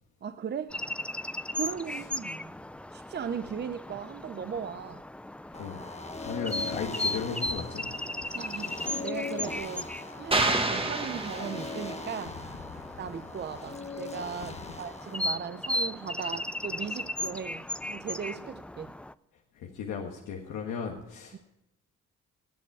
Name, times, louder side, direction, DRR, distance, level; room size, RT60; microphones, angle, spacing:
voice 1, 0.2-0.7 1.5-2.5 2.9-5.0 8.3-9.9 10.2-12.4 13.0-18.9 21.3-21.4, right 7 dB, 35° right, 0.7 m, -37 dB
sound 1, 0.7-19.1, left 1 dB, 5° left, 0.4 m, -37 dB
voice 2, 5.5-7.9 14.5-14.6 19.5-21.4, left 6 dB, 90° left, 1.5 m, -36 dB
sound 2, 5.5-15.4, left 3 dB, 20° left, 1.2 m, -41 dB
sound 3, 10.3-12.0, right 2 dB, 20° right, 1.5 m, -28 dB
18.5 x 7.5 x 4.8 m
cardioid pair, 90°, 30 cm